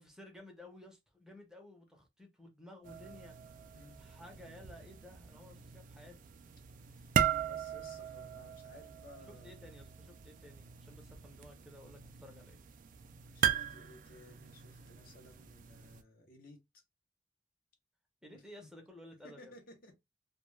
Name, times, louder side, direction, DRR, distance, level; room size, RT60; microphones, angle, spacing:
voice 1, 0.0-3.3 4.0-6.1 9.3-12.6 18.2-19.5, left 1 dB, 5° right, 0.6 m, -54 dB
sound 1, 2.8-16.0, right 9 dB, 50° right, 0.3 m, -39 dB
voice 2, 6.8-9.7 13.2-16.6 18.3-18.4 19.2-19.9, left 1 dB, 55° left, 0.7 m, -57 dB
2.3 x 2.2 x 3.0 m
head